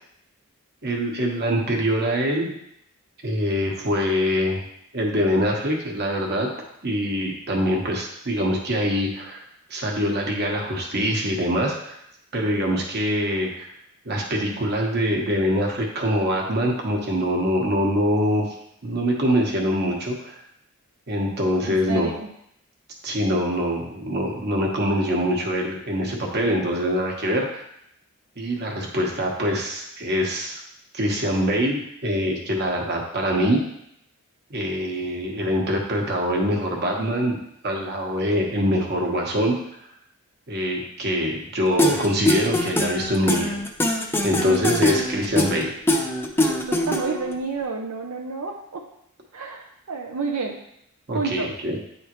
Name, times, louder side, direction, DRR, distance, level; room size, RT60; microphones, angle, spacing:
voice 1, 0.8-2.5 3.2-4.6 4.9-6.5 6.8-9.4 9.7-12.0 12.3-13.7 14.0-18.5 18.8-20.3 21.1-22.1 23.0-27.6 28.4-30.6 30.9-33.6 34.5-37.4 37.6-39.5 40.5-43.6 44.2-45.7 51.1-51.8, equal, 50° right, 0 dB, 1.2 m, -24 dB
voice 2, 21.6-22.3 44.4-44.6 46.5-48.8 49.3-50.6 51.1-51.5, right 4 dB, 85° right, 0 dB, 0.6 m, -30 dB
sound 1, 41.8-47.3, left 1 dB, 10° left, 0.5 m, -22 dB
9.3 x 3.5 x 3.0 m, 0.75 s
head